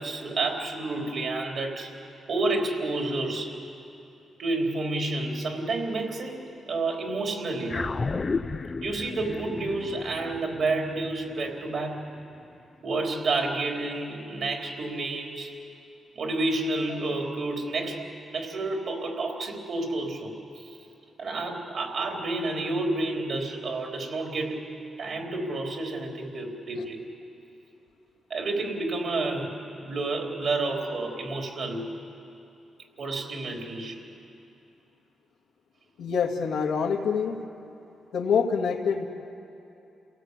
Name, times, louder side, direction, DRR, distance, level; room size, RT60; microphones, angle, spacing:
voice 1, 0.0-1.9 2.3-3.6 4.4-6.4 6.7-8.0 8.8-12.2 12.8-15.5 16.2-20.8 21.2-27.0 28.3-32.0 33.0-34.1, right 2 dB, 60° right, 1 dB, 4.0 m, -30 dB
sound 1, 7.7-12.3, left 4 dB, 35° left, 0.6 m, -34 dB
voice 2, 36.0-37.4 38.1-39.1, left 6 dB, 85° left, 1 dB, 2.3 m, -26 dB
28.5 x 18.0 x 8.3 m, 2.8 s
cardioid pair, 85°, 0 cm